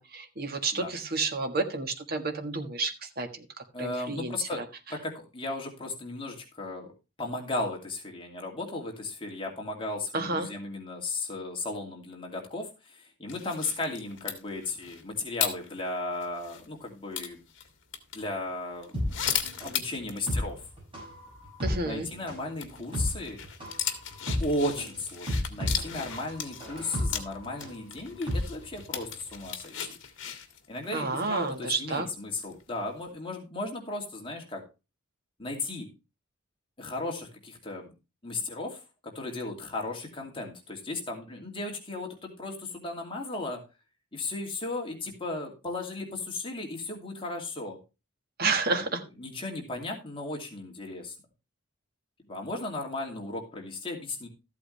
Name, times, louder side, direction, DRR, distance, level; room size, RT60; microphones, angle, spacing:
voice 1, 0.0-3.5 3.8-4.6 10.1-10.5 21.6-22.1 30.9-32.1 48.4-49.0, right 3 dB, 50° right, 5 dB, 1.5 m, -30 dB
voice 2, 3.7-4.6 4.9-6.9 7.2-17.4 18.1-20.6 21.8-23.4 24.4-29.9 30.7-34.6 35.4-35.9 36.8-37.9 38.2-43.6 44.1-47.8 48.7-48.9 49.2-51.1 52.3-54.3, left 2 dB, 25° left, 0 dB, 2.5 m, -35 dB
sound 1, 13.3-16.7 17.1-18.2 18.8-20.3 20.6-20.7 20.9-21.0 22.6-32.0 32.5-32.8, left 9 dB, 60° left, 1.8 m, -36 dB
sound 2, 18.9-29.2 29.4-29.5, left 1 dB, 25° right, 6.8 m, -33 dB
13.5 x 8.4 x 3.2 m, 0.28 s
head